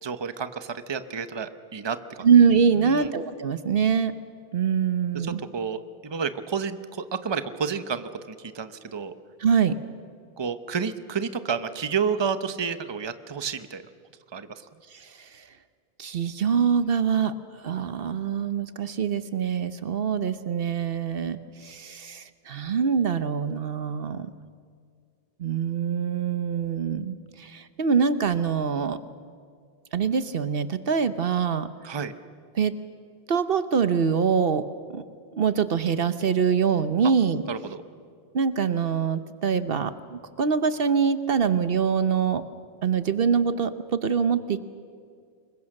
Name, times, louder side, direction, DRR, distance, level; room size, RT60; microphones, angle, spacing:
voice 1, 0.0-2.2 2.8-3.1 5.1-9.1 10.4-13.8 14.3-14.6 31.8-32.1 37.5-37.8, right 6 dB, 30° right, 11 dB, 0.8 m, -30 dB
voice 2, 2.2-4.1 4.5-5.4 9.4-9.7 14.9-15.4 16.0-17.3 17.6-24.3 25.4-29.0 29.9-31.7 32.5-32.7 33.3-34.6 34.9-35.0 35.3-37.4 38.3-42.4 42.8-44.6, right 6 dB, 65° right, 12 dB, 1.0 m, -24 dB
26.0 x 22.0 x 6.5 m, 2.2 s
omnidirectional pair, 1.0 m